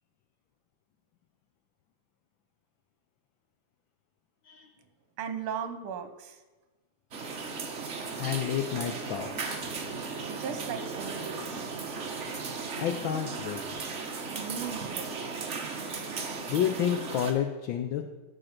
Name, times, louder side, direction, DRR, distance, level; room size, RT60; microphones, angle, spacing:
voice 1, 5.2-6.4 10.3-11.7 14.3-15.2, right 7 dB, 80° right, 9 dB, 1.8 m, -37 dB
sound 1, 7.1-17.3, right 4 dB, 45° right, 1.1 m, -36 dB
voice 2, 8.2-9.6 12.8-13.6 16.5-18.0, left 9 dB, 70° left, 6 dB, 1.4 m, -30 dB
14.0 x 5.3 x 5.9 m, 1.2 s
omnidirectional pair, 2.4 m